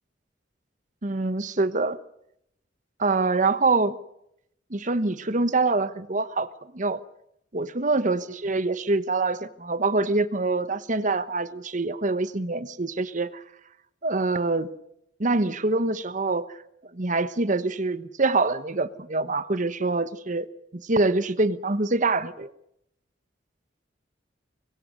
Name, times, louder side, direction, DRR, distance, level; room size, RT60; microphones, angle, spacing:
voice 1, 1.0-2.0 3.0-4.0 4.7-6.5 6.7-7.0 7.5-13.4 14.0-14.7 15.2-16.5 16.9-20.5 20.8-22.5, right 3 dB, 45° right, 14 dB, 1.1 m, -25 dB
25.5 x 22.0 x 6.6 m, 0.78 s
head